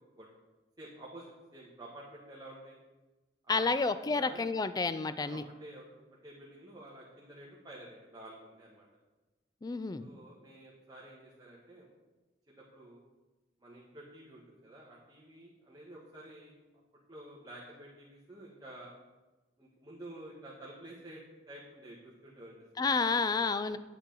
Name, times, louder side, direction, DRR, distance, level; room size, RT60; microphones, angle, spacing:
voice 1, 0.8-2.8 3.4-4.5 5.2-5.9 6.2-8.9 10.0-11.9 12.5-13.0 13.6-16.6 17.1-18.9 19.6-21.2 21.5-22.9, right 1 dB, 20° right, -5 dB, 1.2 m, -50 dB
voice 2, 3.5-5.4 9.6-10.1 22.8-23.8, left 4 dB, 20° left, 13 dB, 0.3 m, -30 dB
8.5 x 8.0 x 3.9 m, 1.2 s
head